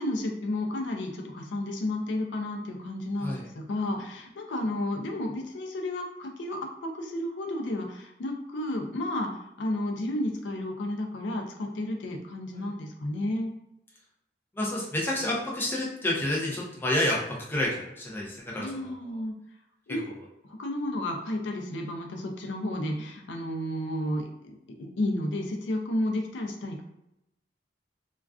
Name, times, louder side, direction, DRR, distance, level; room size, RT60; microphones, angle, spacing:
voice 1, 0.0-13.5 18.6-19.4 19.9-20.0 20.4-26.8, left 1 dB, 90° left, 2 dB, 0.4 m, -32 dB
voice 2, 14.6-19.2, left 1 dB, 10° left, -4 dB, 0.4 m, -29 dB
2.3 x 2.3 x 2.3 m, 0.85 s
head